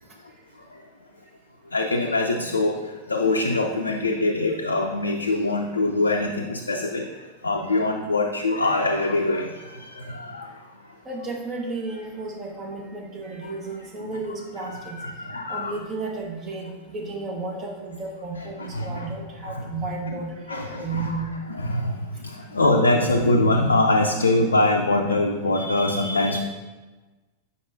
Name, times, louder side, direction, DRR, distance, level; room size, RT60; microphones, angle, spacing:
voice 1, 1.7-7.1 7.4-10.5 14.0-14.2 14.8-15.8 18.4-19.1 19.4-19.6 20.1-20.2 20.5-26.4, left 2 dB, 75° left, 1 dB, 0.4 m, -23 dB
voice 2, 11.0-15.0 15.5-21.3, right 3 dB, 25° right, 0 dB, 1.2 m, -33 dB
7.7 x 5.2 x 2.6 m, 1.2 s
figure-of-eight pair, 90°, 0 cm